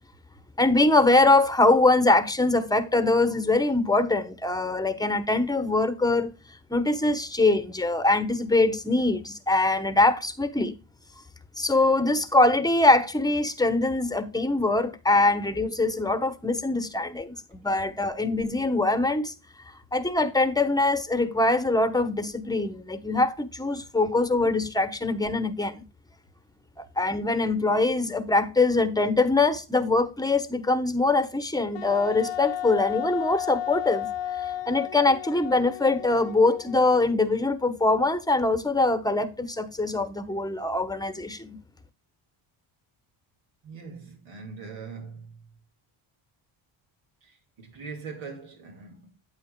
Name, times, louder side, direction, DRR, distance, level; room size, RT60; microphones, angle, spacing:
voice 1, 0.6-6.3 6.7-10.8 11.6-19.3 19.9-25.9 26.8-34.1 34.4-41.6, left 2 dB, 10° left, 1.0 m, -23 dB
Wind instrument woodwind instrument, 31.7-37.2, left 11 dB, 65° left, 0.7 m, -34 dB
voice 2, 43.6-45.4 47.2-49.1, right 5 dB, 75° right, 2.4 m, -41 dB
8.8 x 8.6 x 2.2 m
cardioid pair, 80°, 48 cm